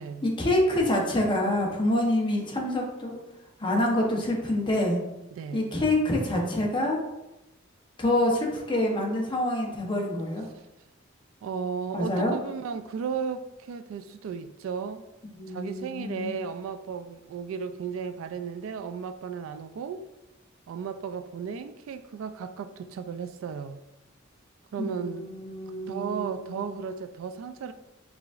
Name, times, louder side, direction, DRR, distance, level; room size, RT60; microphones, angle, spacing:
voice 1, 0.2-3.2 3.6-5.0 5.5-7.0 8.0-10.4 11.9-12.3 15.4-16.3 24.8-26.8, left 1 dB, 25° left, 0.8 m, -26 dB
voice 2, 5.3-5.7 11.4-15.0 15.5-20.1 20.7-23.8 24.7-25.3 25.9-27.7, right 6 dB, 75° right, 0.3 m, -35 dB
4.8 x 3.7 x 2.4 m
head